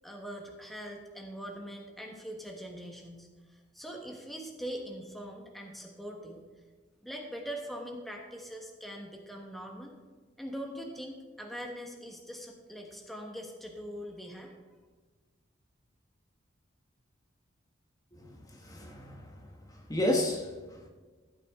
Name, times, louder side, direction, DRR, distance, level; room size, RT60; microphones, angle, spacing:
voice 1, 0.0-6.4 7.0-9.9 10.4-14.5, equal, ahead, 1.3 m, -42 dB
voice 2, 18.1-20.8, left 1 dB, 20° left, 1.2 m, -33 dB
14.5 x 9.5 x 3.6 m
head